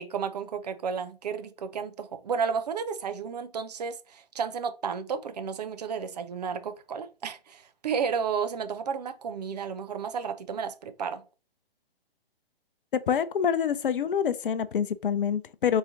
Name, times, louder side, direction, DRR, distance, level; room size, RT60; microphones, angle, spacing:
voice 1, 0.0-11.2, right 6 dB, 45° right, 0.5 m, -32 dB
voice 2, 12.9-15.8, left 8 dB, 60° left, 0.5 m, -26 dB
3.9 x 2.8 x 3.9 m
figure-of-eight pair, 130°, 31 cm